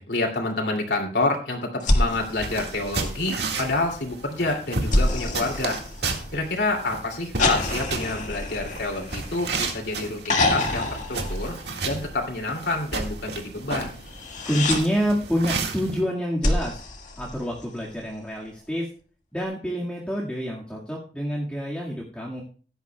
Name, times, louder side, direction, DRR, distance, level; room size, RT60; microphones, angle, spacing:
voice 1, 0.0-5.8 6.3-11.6 11.8-14.0, left 2 dB, 80° left, 1 dB, 2.7 m, -28 dB
sound 1, 1.8-3.4 4.9-6.6 7.4-9.7 10.2-12.1 14.0-14.8 16.4-17.9 19.4-19.5, left 2 dB, 45° left, 2.0 m, -27 dB
sound 2, 2.1-16.0, right 3 dB, 75° right, 1.9 m, -33 dB
voice 2, 14.5-16.8 17.2-18.9 19.3-22.4, equal, 5° left, -5 dB, 1.9 m, -27 dB
16.5 x 11.0 x 2.3 m, 0.40 s
head